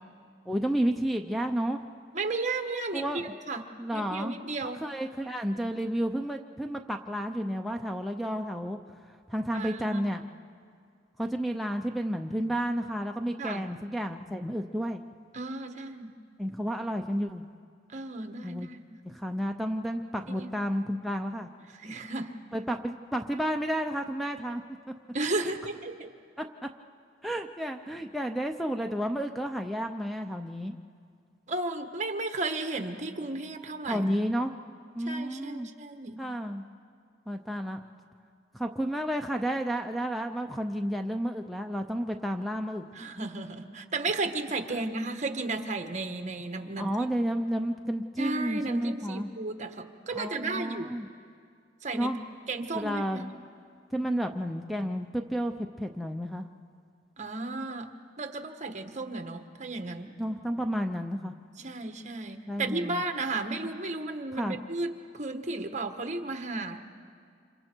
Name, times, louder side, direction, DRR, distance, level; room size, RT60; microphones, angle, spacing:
voice 1, 0.5-1.8 2.9-3.2 3.8-4.4 4.8-8.8 9.1-10.3 11.2-15.0 16.4-17.5 18.4-18.7 19.0-21.5 22.5-24.6 25.4-25.5 26.4-26.7 27.2-30.8 33.9-34.6 35.0-35.7 36.2-36.6 37.3-37.8 38.5-42.8 44.7-44.8 46.8-49.3 50.1-51.1 51.9-52.2 52.7-53.3 53.9-56.5 60.2-61.3 62.5-63.0 64.3-64.6, equal, ahead, 5 dB, 0.6 m, -31 dB
voice 2, 2.1-3.0 3.5-4.8 9.5-10.0 13.4-13.7 15.3-16.1 17.9-19.0 20.3-20.5 21.8-22.3 25.1-26.1 31.5-34.1 35.0-36.2 42.9-47.1 48.2-50.9 51.8-52.1 52.5-53.3 57.2-57.9 58.2-60.1 61.6-66.8, right 3 dB, 40° right, 6 dB, 1.3 m, -34 dB
29.0 x 27.0 x 4.5 m, 2.2 s
head